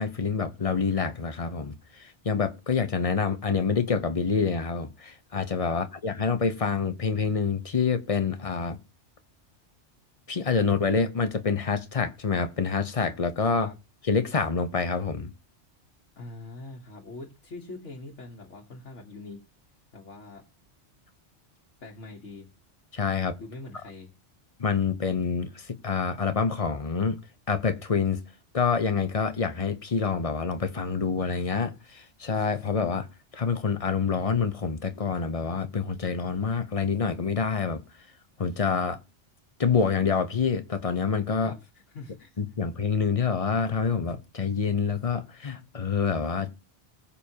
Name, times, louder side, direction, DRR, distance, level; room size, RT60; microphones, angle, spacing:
voice 1, 0.0-8.8 10.3-13.7 14.0-15.3 22.9-23.4 24.6-27.2 27.5-28.2 28.5-33.1 33.3-37.8 38.4-39.0 39.6-41.5 42.4-46.6, left 5 dB, 35° left, 0.8 m, -27 dB
voice 2, 16.2-19.4 19.9-20.4 21.8-22.5 23.4-24.1 41.4-42.3, left 2 dB, 75° left, 1.7 m, -43 dB
20.0 x 7.0 x 2.9 m
omnidirectional pair, 1.2 m